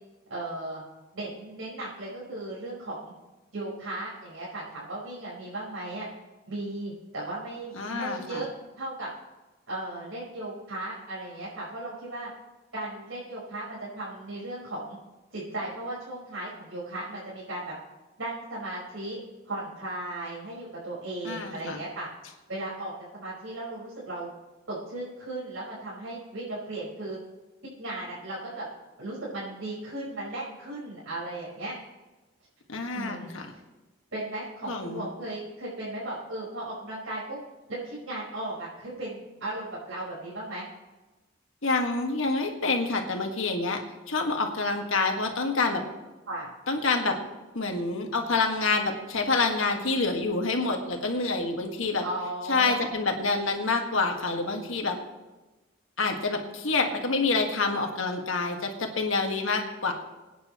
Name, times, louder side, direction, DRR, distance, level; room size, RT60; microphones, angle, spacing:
voice 1, 0.3-0.8 1.1-3.1 3.5-6.1 6.5-8.5 8.8-9.1 9.7-12.3 12.7-15.0 15.3-17.8 18.2-19.2 19.4-22.1 22.5-24.3 24.7-27.2 27.8-28.7 29.0-31.7 32.9-33.3 34.1-37.4 37.7-40.7 46.3-46.5 52.0-52.9, right 2 dB, 90° right, -8 dB, 5.1 m, -36 dB
voice 2, 7.7-8.5 21.2-21.8 32.7-33.5 34.7-35.1 41.6-43.8 44.1-45.8 46.7-47.2 47.5-52.0 52.5-55.0 56.0-59.9, left 3 dB, 80° left, 3 dB, 1.8 m, -27 dB
23.0 x 9.6 x 3.1 m, 1.1 s
head